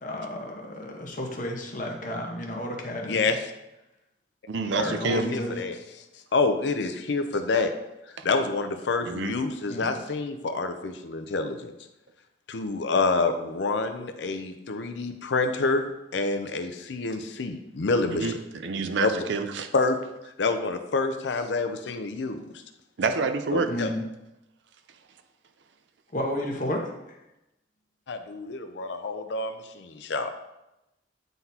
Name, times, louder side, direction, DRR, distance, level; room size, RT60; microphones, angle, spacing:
voice 1, 0.0-3.3 4.8-5.5 9.7-9.9 23.7-24.0 26.1-26.8 27.1-27.2, left 1 dB, 45° left, 1 dB, 1.0 m, -32 dB
voice 2, 3.0-3.4 4.7-5.8 6.3-7.7 8.2-11.7 12.5-18.4 19.0-19.1 19.7-20.0 20.2-22.5 23.5-23.9 28.1-30.3, left 3 dB, 70° left, 8 dB, 0.5 m, -27 dB
voice 3, 4.5-5.3 8.2-8.3 9.0-9.3 18.1-19.7 23.0-23.7, right 4 dB, 70° right, 8 dB, 0.5 m, -28 dB
9.1 x 3.9 x 2.8 m, 0.92 s
head